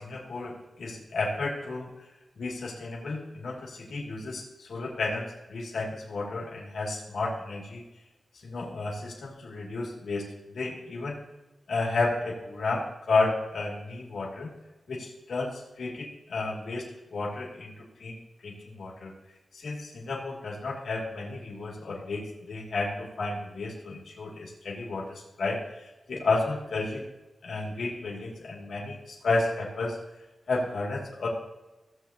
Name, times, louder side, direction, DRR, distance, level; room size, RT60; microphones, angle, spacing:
voice 1, 0.0-1.9 2.4-7.8 8.4-11.2 11.7-14.5 14.9-19.1 19.5-27.0 27.4-30.0 30.5-31.3, left 3 dB, 85° left, -3 dB, 2.2 m, -32 dB
15.5 x 7.7 x 2.8 m, 1.1 s
wide cardioid pair, 150°, 0 cm